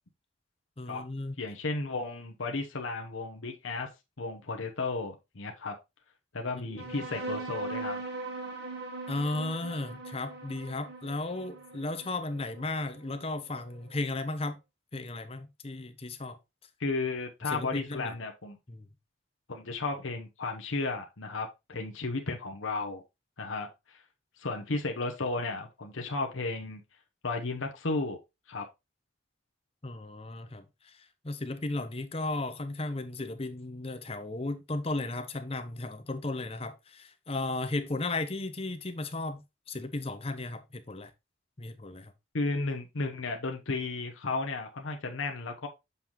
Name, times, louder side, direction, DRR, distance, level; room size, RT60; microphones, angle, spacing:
voice 1, 0.8-1.3 6.8-7.0 9.1-14.6 14.9-16.4 17.5-18.1 18.7-18.9 29.8-41.1 41.6-42.1, left 2 dB, 30° left, 0.8 m, -35 dB
voice 2, 1.4-3.9 4.2-5.7 6.3-8.0 16.8-18.6 19.5-23.0 23.4-23.7 24.4-26.8 27.2-28.2 28.5-28.7 42.3-45.7, left 3 dB, 85° left, 1.0 m, -34 dB
sound 1, 6.8-13.7, right 2 dB, 55° right, 1.3 m, -40 dB
6.8 x 5.7 x 3.0 m
head